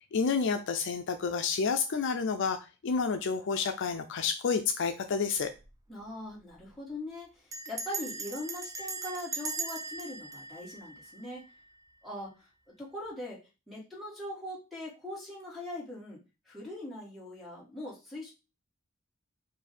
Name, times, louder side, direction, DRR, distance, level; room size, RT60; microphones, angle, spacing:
voice 1, 0.1-5.5, left 5 dB, 60° left, 8 dB, 0.4 m, -30 dB
Bell, 5.4-5.8 6.0-6.1 6.3-6.7 7.5-11.6, right 3 dB, 15° right, 0.4 m, -39 dB
voice 2, 5.9-11.4 12.0-12.5 12.8-18.3, left 1 dB, ahead, -5 dB, 2.0 m, -41 dB
4.6 x 2.6 x 4.2 m, 0.29 s
head